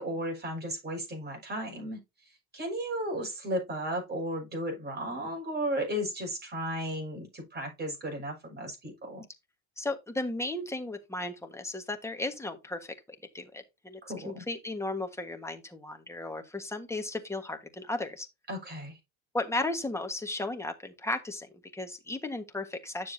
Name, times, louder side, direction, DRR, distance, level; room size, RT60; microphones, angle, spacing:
voice 1, 0.0-2.0 2.5-9.2 14.0-14.4 18.5-19.0, right 1 dB, 25° right, 6.4 m, -34 dB
voice 2, 9.8-14.0 14.2-18.3 19.3-23.1, left 2 dB, 5° left, 1.4 m, -35 dB
10.0 x 6.8 x 2.7 m
cardioid pair, 120°, 42 cm